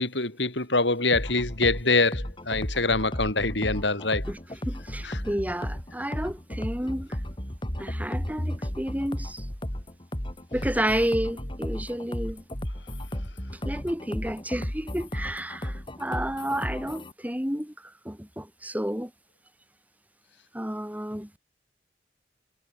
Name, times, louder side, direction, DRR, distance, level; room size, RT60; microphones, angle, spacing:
voice 1, 0.0-4.2 5.0-5.1, left 3 dB, 80° left, 7.9 m, -25 dB
sound 1, 1.1-17.1, equal, 30° left, 3.2 m, -34 dB
voice 2, 4.3-7.2 7.8-9.5 10.5-12.4 13.6-19.1 20.5-21.3, equal, 10° right, 5.4 m, -31 dB
head